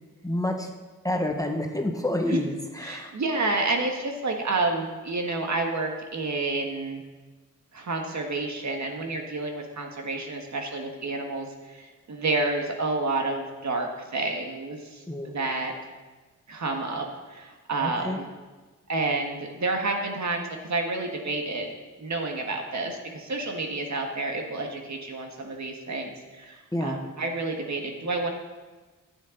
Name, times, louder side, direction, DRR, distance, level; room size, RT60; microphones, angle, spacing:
voice 1, 0.2-0.7 1.0-3.1 15.1-15.5 17.8-18.2 26.7-27.0, left 1 dB, 10° left, 2 dB, 1.0 m, -28 dB
voice 2, 2.8-7.0 7.7-11.5 11.7-15.0 15.3-15.7 16.5-18.3 18.9-21.7 22.0-28.3, right 3 dB, 55° right, 3 dB, 1.5 m, -29 dB
14.5 x 8.8 x 3.8 m, 1.3 s
wide cardioid pair, 120°, 34 cm